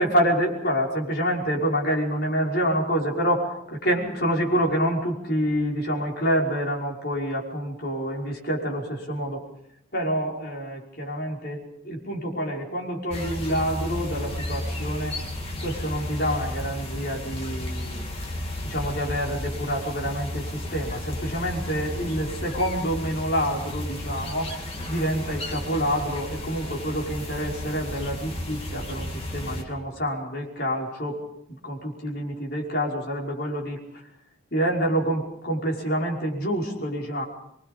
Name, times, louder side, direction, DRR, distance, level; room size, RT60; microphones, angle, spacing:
voice 1, 0.0-9.4 9.9-15.2 15.6-18.1 18.6-24.5 24.8-31.2 31.6-34.1 34.5-37.3, equal, 50° left, -1 dB, 5.6 m, -27 dB
sound 1, 13.1-29.6, left 1 dB, 30° left, 3.0 m, -33 dB
25.5 x 23.5 x 5.4 m, 0.76 s
head